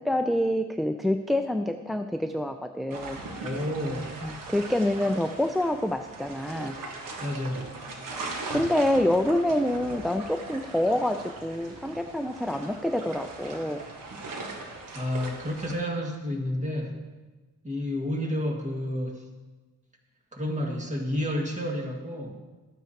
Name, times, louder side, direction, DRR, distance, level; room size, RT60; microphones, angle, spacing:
voice 1, 0.0-3.4 4.2-6.8 8.1-13.8, left 1 dB, ahead, 6 dB, 0.3 m, -27 dB
sound 1, 2.9-15.8, right 3 dB, 85° right, 1.4 m, -40 dB
voice 2, 3.4-4.1 7.2-7.7 14.9-17.0 17.6-19.3 20.3-22.4, left 1 dB, 20° right, 1 dB, 1.8 m, -30 dB
sound 2, 5.7-11.9, right 2 dB, 60° right, 2.7 m, -53 dB
13.0 x 9.3 x 2.9 m, 1.2 s
cardioid pair, 100°, 32 cm